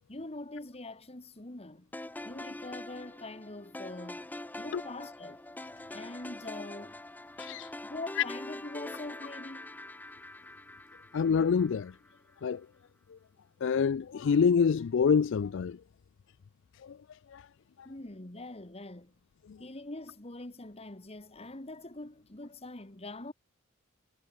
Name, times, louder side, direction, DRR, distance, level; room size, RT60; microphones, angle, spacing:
voice 1, 0.1-1.9 2.2-4.3 4.6-5.4 5.9-7.0 7.8-9.8 17.8-19.2 19.6-23.3, left 2 dB, 30° left, 1.7 m, -43 dB
sound 1, 1.9-12.2, left 1 dB, 10° left, 0.6 m, -44 dB
voice 2, 7.4-7.7 8.2-8.3 11.1-11.9 12.4-12.7 13.1-13.2 13.6-15.8 16.8-17.0 17.3-17.5 19.5-19.6, left 6 dB, 60° left, 0.4 m, -26 dB
head